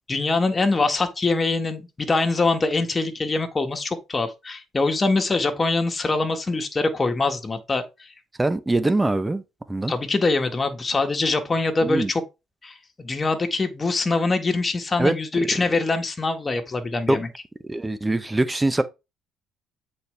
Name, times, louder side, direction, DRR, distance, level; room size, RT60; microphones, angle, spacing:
voice 1, 0.1-8.1 9.9-12.2 12.6-17.3, left 3 dB, 30° left, 1.7 m, -23 dB
voice 2, 8.4-9.4 9.7-9.9 11.8-12.1 15.0-15.1 17.1-17.2 17.7-18.8, right 2 dB, 15° right, 0.8 m, -22 dB
8.2 x 4.4 x 3.4 m
supercardioid pair, 75°, 0 cm